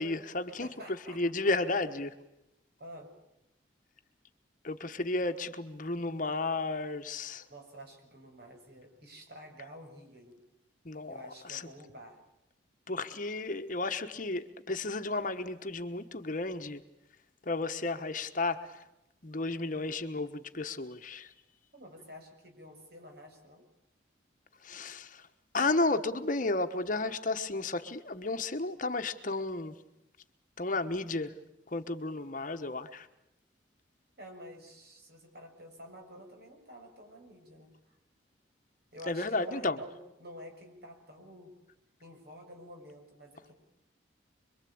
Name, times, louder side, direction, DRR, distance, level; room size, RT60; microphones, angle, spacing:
voice 1, 0.0-0.7 1.1-2.1 4.6-7.4 10.8-11.2 11.5-11.7 12.9-16.8 17.5-18.8 19.2-21.3 24.6-25.3 25.5-29.7 30.6-31.3 31.7-33.1 39.1-39.8, left 2 dB, 40° left, 1.2 m, -33 dB
voice 2, 0.6-1.2 2.8-3.1 7.5-10.4 11.1-12.2 21.7-23.6 34.2-37.9 38.9-41.5 42.0-43.5, equal, 55° right, 6.8 m, -49 dB
26.0 x 23.5 x 8.7 m
head